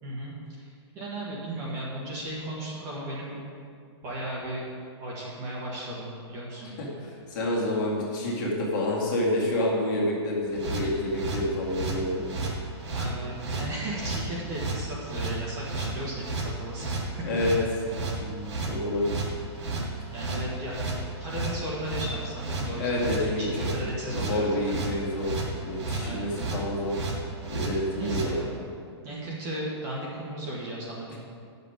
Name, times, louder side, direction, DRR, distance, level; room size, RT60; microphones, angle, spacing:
voice 1, 0.0-0.7 0.9-3.4 4.0-4.7 5.0-6.8 12.9-17.1 20.1-20.8 21.2-24.6 26.0-26.3 28.0-28.5 29.0-31.1, right 1 dB, 20° right, -5 dB, 1.4 m, -35 dB
voice 2, 7.3-12.2 17.2-17.5 18.2-19.3 22.8-23.5 24.1-25.3 25.6-27.0 27.5-28.4 31.1-31.2, left 1 dB, 45° left, -4 dB, 2.2 m, -28 dB
sound 1, 10.5-28.3, right 3 dB, 80° right, 2.6 m, -33 dB
9.7 x 6.8 x 5.0 m, 2.3 s
hypercardioid pair, 175°, 15 cm